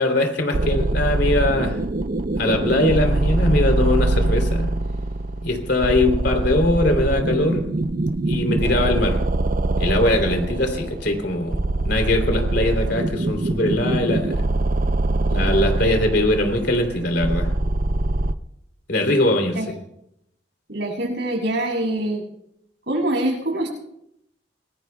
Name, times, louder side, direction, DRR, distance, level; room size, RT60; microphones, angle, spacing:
voice 1, 0.0-1.8 2.4-4.7 5.4-7.6 8.3-9.2 9.8-14.4 15.3-17.5 18.9-19.6, left 1 dB, 60° left, 3 dB, 3.2 m, -21 dB
sound 1, 0.5-18.3, right 2 dB, 45° right, 0.6 m, -23 dB
voice 2, 20.7-22.2 22.9-23.7, right 1 dB, 65° right, 0 dB, 7.4 m, -24 dB
26.5 x 21.5 x 2.3 m, 0.80 s
head